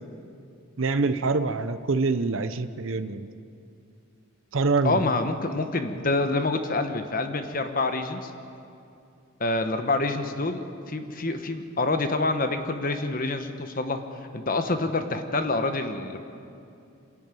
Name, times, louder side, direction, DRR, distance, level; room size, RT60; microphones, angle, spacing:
voice 1, 0.8-3.3 4.5-5.0, right 3 dB, 65° right, 11 dB, 0.7 m, -25 dB
voice 2, 4.8-8.3 9.4-14.0 14.3-16.2, left 2 dB, 40° left, 7 dB, 1.2 m, -27 dB
26.0 x 11.0 x 9.1 m, 2.6 s
head